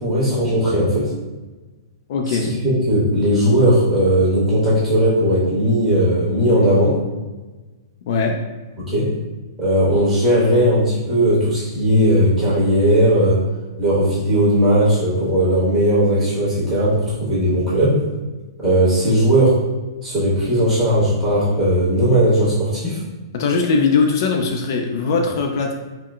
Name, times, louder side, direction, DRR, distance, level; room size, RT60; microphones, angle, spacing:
voice 1, 0.0-1.1 2.3-7.0 8.8-9.1 9.6-13.4 13.8-18.1 18.6-19.6 20.0-23.0, equal, 15° right, -10 dB, 1.2 m, -17 dB
voice 2, 2.1-2.5 8.1-8.4 23.3-25.7, left 4 dB, 55° left, 2 dB, 0.3 m, -20 dB
3.7 x 2.1 x 2.3 m, 1.2 s
hypercardioid pair, 150°, 2 cm